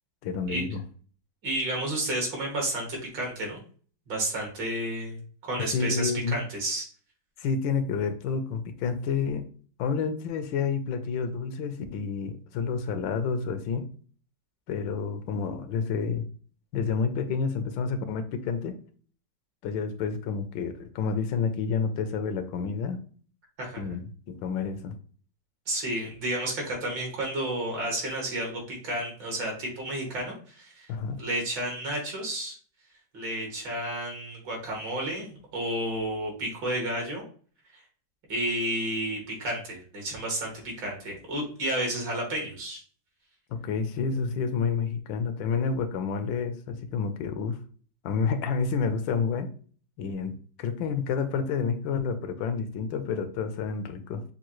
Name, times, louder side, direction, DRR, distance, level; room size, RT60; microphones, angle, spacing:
voice 1, 0.2-0.8 5.7-6.4 7.4-9.5 9.8-13.9 14.7-16.2 16.7-18.8 19.6-23.0 23.8-24.9 30.9-31.2 43.5-47.6 48.0-49.5 50.0-54.2, left 5 dB, 85° left, 9 dB, 1.4 m, -29 dB
voice 2, 1.4-3.6 4.1-6.8 23.6-23.8 25.7-30.9 31.2-32.6 33.1-37.2 38.3-42.8, right 1 dB, 75° right, -1 dB, 2.4 m, -31 dB
6.7 x 2.3 x 3.0 m, 0.43 s
omnidirectional pair, 2.0 m